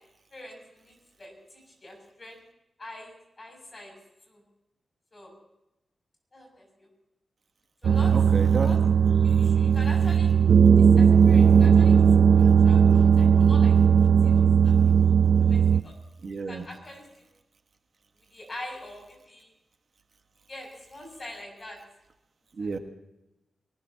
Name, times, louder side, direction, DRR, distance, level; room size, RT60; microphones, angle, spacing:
voice 1, 0.3-2.4 2.8-4.0 4.3-4.4 5.1-5.4 6.3-6.9 7.8-8.2 8.6-10.3 10.8-12.0 12.3-13.8 14.2-14.9 15.4-15.9 16.5-17.3 18.3-19.5 20.5-21.8 22.6-22.8, left 1 dB, 30° left, 1 dB, 7.1 m, -44 dB
sound 1, 7.8-15.8, right 7 dB, 80° right, 0.5 m, -18 dB
voice 2, 8.1-8.7 16.2-16.6 22.6-22.8, right 4 dB, 55° right, 4 dB, 1.5 m, -31 dB
23.0 x 19.5 x 2.9 m, 0.93 s
wide cardioid pair, 115°, 0 cm